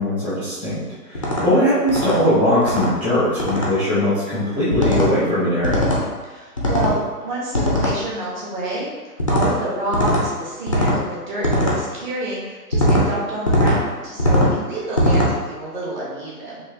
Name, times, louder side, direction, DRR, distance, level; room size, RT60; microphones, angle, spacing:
voice 1, 0.0-5.9, equal, 5° right, -15 dB, 0.9 m, -20 dB
sound 1, 1.1-1.4 1.9-2.2 2.6-2.9 3.4-3.7 4.7-5.1 5.6-6.0 6.6-7.0 7.5-8.0 9.2-9.5 9.9-10.2 10.7-11.0 11.4-11.8 12.7-13.0 13.5-13.8 14.2-14.5 15.0-15.3, equal, 25° left, 0.4 m, -19 dB
voice 2, 6.2-8.9 9.3-16.6, right 1 dB, 30° right, -6 dB, 1.2 m, -28 dB
4.7 x 2.9 x 2.9 m, 1.3 s
hypercardioid pair, 150°, 47 cm